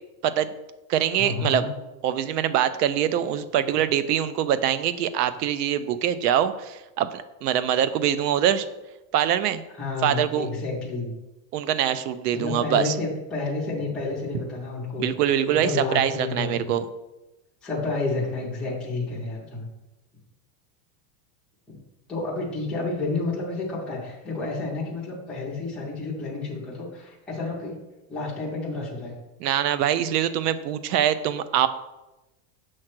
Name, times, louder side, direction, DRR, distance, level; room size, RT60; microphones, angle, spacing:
voice 1, 0.2-0.5 0.9-1.7 2.0-8.7 9.1-9.6 10.0-10.5 11.5-12.9 15.0-16.8 29.4-31.7, right 10 dB, 70° right, 13 dB, 0.7 m, -24 dB
voice 2, 1.2-1.7 9.7-11.1 12.3-15.1 15.5-16.8 17.6-19.7 21.7-21.8 22.1-27.8 28.1-29.1, left 3 dB, ahead, -7 dB, 0.5 m, -30 dB
7.6 x 3.2 x 5.9 m, 1.0 s
supercardioid pair, 175°, 49 cm